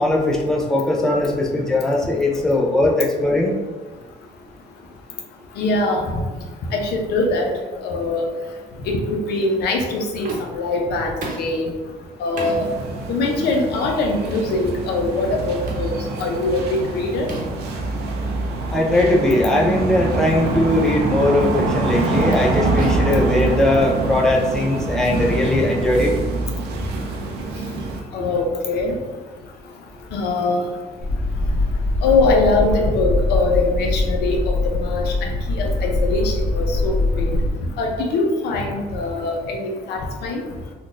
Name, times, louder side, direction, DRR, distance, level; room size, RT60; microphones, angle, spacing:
voice 1, 0.0-3.5 18.7-26.1, left 1 dB, 5° left, -2 dB, 0.4 m, -19 dB
voice 2, 5.6-6.0 6.7-7.5 7.8-8.3 8.9-11.7 12.2-12.6 13.1-15.9 16.2-17.3 28.1-29.0 30.1-30.6 32.0-34.4 34.6-37.4 37.8-40.4, left 3 dB, 75° left, 1 dB, 0.6 m, -22 dB
sound 1, 10.2-10.7 11.2-11.5 12.4-12.6 13.4-13.6 14.5-14.7 15.7-15.9 17.3-17.7 18.9-19.1 19.5-19.7 20.4-20.6 21.6-21.8 22.8-24.0, right 2 dB, 50° right, 0.8 m, -34 dB
sound 2, 12.4-28.0, right 3 dB, 75° right, 0.5 m, -25 dB
sound 3, 31.0-37.5, left 2 dB, 40° left, 0.8 m, -22 dB
3.6 x 2.3 x 2.5 m, 1.3 s
cardioid pair, 110°, 17 cm